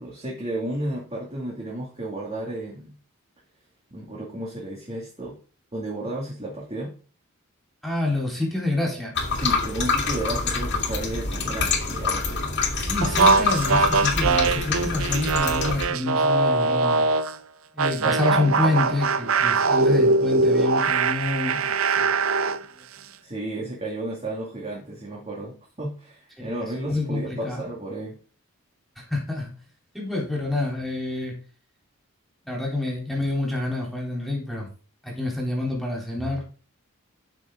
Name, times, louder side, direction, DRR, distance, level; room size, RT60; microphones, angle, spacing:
voice 1, 0.0-2.9 3.9-5.4 5.7-6.9 9.4-12.6 18.0-18.4 23.2-28.2 32.5-32.6, right 1 dB, 30° right, -3 dB, 2.5 m, -33 dB
voice 2, 7.8-9.1 12.7-17.0 17.7-22.1 26.4-27.6 29.0-29.5 29.9-31.3 32.5-34.7 35.0-36.4, left 2 dB, ahead, -2 dB, 3.8 m, -27 dB
sound 1, 9.2-15.9, left 4 dB, 55° left, 2.2 m, -26 dB
sound 2, 13.0-17.3 17.8-22.6, right 3 dB, 70° right, 0.6 m, -22 dB
13.0 x 6.3 x 3.9 m, 0.38 s
head